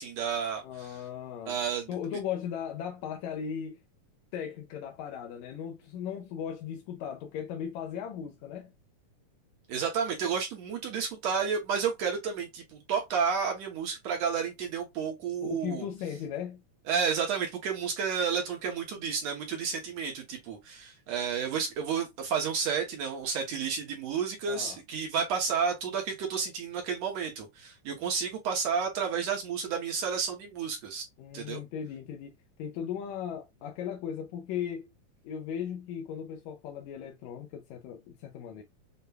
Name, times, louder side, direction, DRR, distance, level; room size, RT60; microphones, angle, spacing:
voice 1, 0.0-1.0 1.5-1.9 9.7-15.9 16.9-31.0 31.3-31.6, right 6 dB, 70° right, 1.8 m, -31 dB
voice 2, 0.6-1.6 1.9-3.8 4.3-8.7 15.4-16.6 24.5-24.8 31.2-34.9 35.2-38.6, left 8 dB, 80° left, 1.7 m, -37 dB
6.6 x 2.2 x 2.2 m
omnidirectional pair, 3.6 m